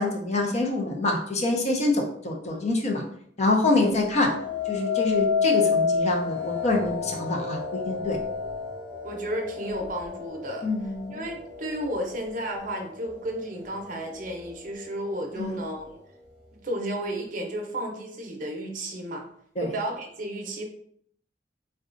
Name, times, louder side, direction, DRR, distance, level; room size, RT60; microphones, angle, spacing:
voice 1, 0.0-3.0 3.4-4.3 4.7-8.2 10.6-11.2 15.4-15.6 19.6-19.7, left 2 dB, 40° left, 1 dB, 0.5 m, -26 dB
sound 1, 4.0-13.2 13.7-14.2, left 5 dB, 5° left, 1.0 m, -30 dB
voice 2, 9.0-16.0 16.6-19.2 19.6-20.6, right 1 dB, 45° right, 2 dB, 0.6 m, -33 dB
3.7 x 2.2 x 2.5 m, 0.66 s
head